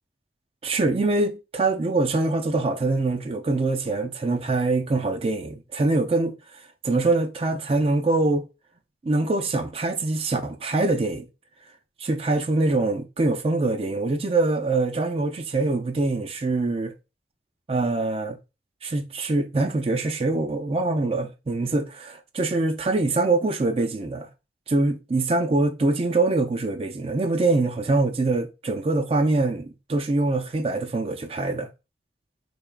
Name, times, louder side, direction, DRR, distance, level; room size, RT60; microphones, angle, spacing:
voice 1, 0.6-6.3 6.8-8.5 9.0-11.3 12.0-16.9 17.7-18.4 18.8-24.3 24.7-31.7, right 2 dB, 30° right, 0.4 m, -24 dB
3.7 x 3.4 x 2.4 m
head